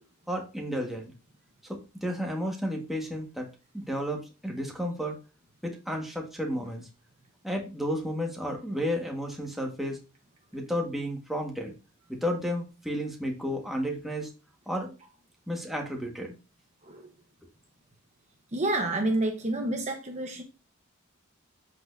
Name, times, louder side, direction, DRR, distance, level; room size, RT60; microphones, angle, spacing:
voice 1, 0.3-1.1 1.6-3.5 3.7-5.2 5.6-6.9 7.4-10.0 10.5-11.7 12.1-14.3 14.7-14.9 15.5-16.3, equal, ahead, 0 dB, 1.6 m, -32 dB
voice 2, 18.5-20.4, right 2 dB, 30° right, 3 dB, 1.0 m, -29 dB
7.7 x 6.2 x 2.7 m, 0.31 s
head